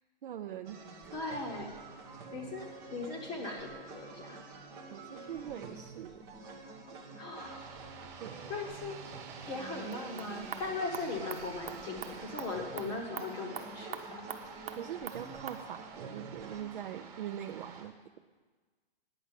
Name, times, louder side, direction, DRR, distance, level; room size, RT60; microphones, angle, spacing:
voice 1, 0.2-0.8 4.9-6.2 8.2-8.5 14.8-17.9, right 10 dB, 60° right, 6 dB, 0.6 m, -42 dB
sound 1, 0.6-16.6, right 3 dB, 10° right, 0.5 m, -48 dB
voice 2, 1.1-1.7 2.3-2.7 2.9-4.4 7.2-7.7 8.5-9.0 9.5-14.3, left 3 dB, 15° left, 1 dB, 0.9 m, -39 dB
sound 2, 7.4-17.9, right 6 dB, 25° right, 1.4 m, -50 dB
sound 3, 9.8-15.6, right 6 dB, 75° right, 1.1 m, -45 dB
9.8 x 6.0 x 8.1 m, 1.4 s
hypercardioid pair, 160°, 30 cm